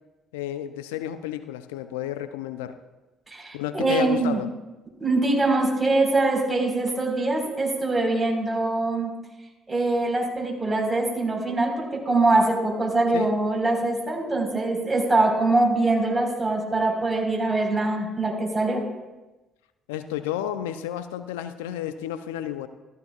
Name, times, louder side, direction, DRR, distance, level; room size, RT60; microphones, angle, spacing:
voice 1, 0.3-2.8 3.5-4.5 13.1-13.3 19.9-22.7, left 11 dB, 85° left, 11 dB, 0.4 m, -31 dB
voice 2, 3.3-4.4 5.0-9.1 9.7-18.8, right 2 dB, 20° right, 0 dB, 4.1 m, -23 dB
14.0 x 13.5 x 2.3 m, 1.1 s
hypercardioid pair, 50°, 0 cm